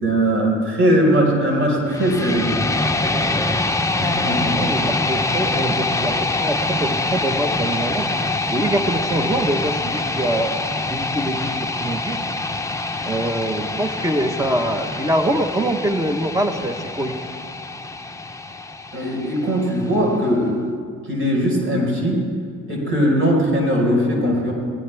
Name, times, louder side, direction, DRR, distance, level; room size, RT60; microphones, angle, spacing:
voice 1, 0.0-2.5 4.0-4.5 18.9-20.5 21.1-22.2 22.7-24.5, equal, 45° right, -2 dB, 4.8 m, -19 dB
sound 1, 1.9-19.9, left 2 dB, 10° left, 0.8 m, -25 dB
voice 2, 3.1-3.5 4.5-8.1 8.5-10.5 10.9-12.2 13.1-17.1, right 1 dB, 10° right, 7 dB, 1.2 m, -24 dB
19.0 x 17.5 x 3.5 m, 2.2 s
cardioid pair, 90°, 30 cm